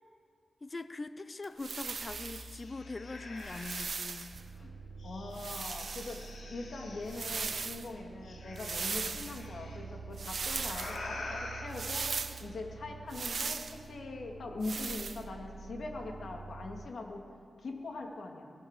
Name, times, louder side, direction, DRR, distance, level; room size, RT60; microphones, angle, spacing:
voice 1, 0.6-4.4, left 3 dB, 30° left, 12 dB, 0.7 m, -42 dB
sound 1, 1.4-1.5 1.9-4.3 5.0-7.4 8.2-9.8 10.6-11.6, left 2 dB, 85° left, 3.7 m, -46 dB
sound 2, 1.6-2.6 3.4-4.4 5.3-6.3 7.1-7.9 8.6-9.4 10.2-11.0 11.7-12.4 13.1-13.8 14.6-15.2, right 5 dB, 55° right, 1.1 m, -38 dB
sound 3, 4.3-16.9, right 4 dB, 75° right, 1.0 m, -48 dB
voice 2, 5.0-12.1 12.4-17.2 17.6-18.5, left 3 dB, 65° left, 1 dB, 3.1 m, -42 dB
24.0 x 17.5 x 6.9 m, 2.5 s
wide cardioid pair, 145°, 0 cm